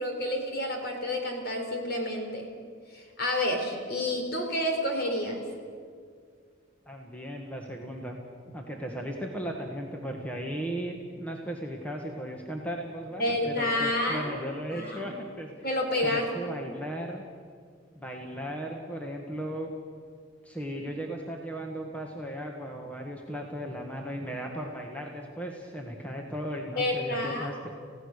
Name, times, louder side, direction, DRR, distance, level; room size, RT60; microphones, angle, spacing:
voice 1, 0.0-2.5 2.9-5.4 13.2-14.3 14.7-15.1 15.6-16.5 26.8-27.5, left 1 dB, 50° left, 3 dB, 3.9 m, -29 dB
voice 2, 6.8-8.2 8.5-15.5 16.0-17.2 17.9-19.7 20.4-27.7, equal, 5° left, 1 dB, 1.5 m, -36 dB
28.5 x 16.5 x 6.6 m, 2.1 s
head